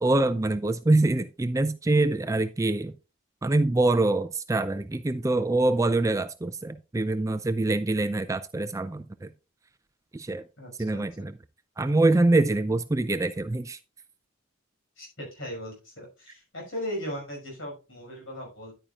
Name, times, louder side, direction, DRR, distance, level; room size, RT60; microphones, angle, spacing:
voice 1, 0.0-2.9 3.4-9.3 10.1-10.4 10.8-11.3 11.8-13.8, right 2 dB, 15° right, 0.3 m, -24 dB
voice 2, 10.6-11.0 15.0-18.7, equal, 65° left, 5.7 m, -37 dB
10.0 x 9.0 x 2.4 m
head